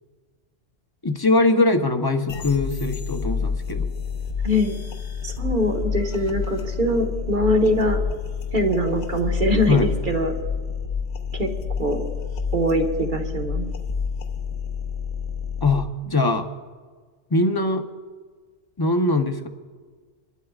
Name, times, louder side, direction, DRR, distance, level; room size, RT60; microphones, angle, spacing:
voice 1, 1.0-3.9 9.7-9.9 15.6-16.5 17.3-17.8 18.8-19.5, left 2 dB, 25° left, 5 dB, 0.7 m, -21 dB
sound 1, 2.3-15.8, left 6 dB, 50° left, 0.9 m, -29 dB
voice 2, 4.4-4.8 5.2-8.0 8.5-10.3 11.3-11.5 11.8-12.0 12.5-13.7, equal, 45° right, 2 dB, 1.5 m, -22 dB
27.0 x 12.0 x 2.4 m, 1.5 s
omnidirectional pair, 1.2 m